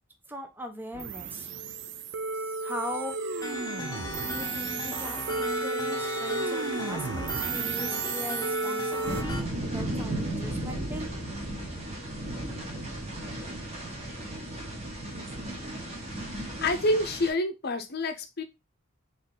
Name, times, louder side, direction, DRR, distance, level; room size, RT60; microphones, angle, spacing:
voice 1, 0.3-1.5 2.6-3.1 4.2-11.1, left 1 dB, 10° right, 3 dB, 0.7 m, -40 dB
sound 1, 0.9-9.2, right 4 dB, 60° right, 0.5 m, -33 dB
sound 2, 3.4-9.4, left 2 dB, 20° left, 0.8 m, -37 dB
sound 3, 9.0-17.3, right 1 dB, 30° right, 1.4 m, -35 dB
voice 2, 16.3-18.4, left 1 dB, 50° left, 8 dB, 0.7 m, -28 dB
4.0 x 3.2 x 3.7 m, 0.24 s
head